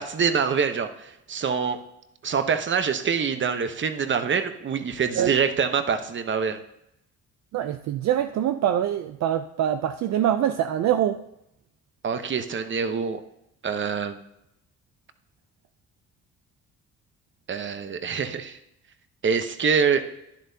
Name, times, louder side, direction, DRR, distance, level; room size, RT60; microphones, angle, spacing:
voice 1, 0.0-1.8 2.2-6.6 12.0-13.2 13.6-14.2 17.5-18.6 19.2-20.1, right 6 dB, 40° right, 9 dB, 0.9 m, -25 dB
voice 2, 7.5-11.2, right 10 dB, 65° right, 8 dB, 0.5 m, -24 dB
11.5 x 10.5 x 2.8 m, 0.83 s
cardioid pair, 90°, 30 cm